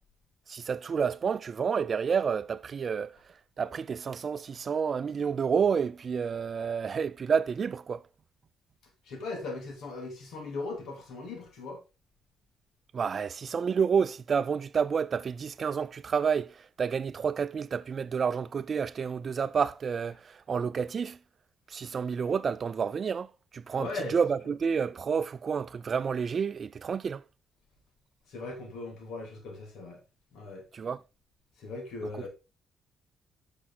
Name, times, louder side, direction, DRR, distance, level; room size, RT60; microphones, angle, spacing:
voice 1, 0.5-3.2 3.6-8.0 12.9-21.2 21.7-27.2 30.7-31.0 32.2-32.3, right 6 dB, 50° right, 0.4 m, -29 dB
voice 2, 9.0-11.8 23.8-24.2 28.3-30.0 30.3-30.6 31.6-32.3, left 3 dB, 80° left, 2.9 m, -38 dB
8.4 x 6.1 x 3.8 m
supercardioid pair, 70°, 0 cm